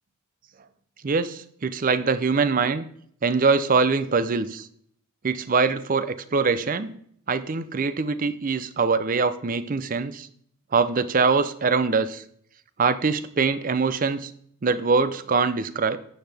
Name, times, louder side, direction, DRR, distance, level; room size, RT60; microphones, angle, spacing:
voice 1, 1.0-2.8 3.2-4.7 5.2-6.9 7.3-10.3 10.7-12.2 12.8-14.3 14.6-16.0, right 4 dB, 40° right, 13 dB, 0.5 m, -23 dB
12.0 x 7.9 x 3.4 m, 0.65 s
head